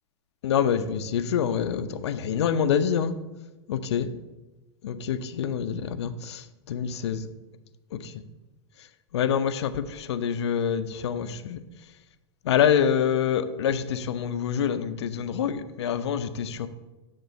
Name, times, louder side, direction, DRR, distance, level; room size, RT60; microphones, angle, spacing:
voice 1, 0.4-3.2 3.7-4.1 4.8-7.3 7.9-8.2 8.8-8.9 9.1-11.6 12.4-16.7, left 8 dB, 75° left, 11 dB, 0.5 m, -26 dB
8.0 x 3.7 x 5.2 m, 1.1 s
hypercardioid pair, 105°, 14 cm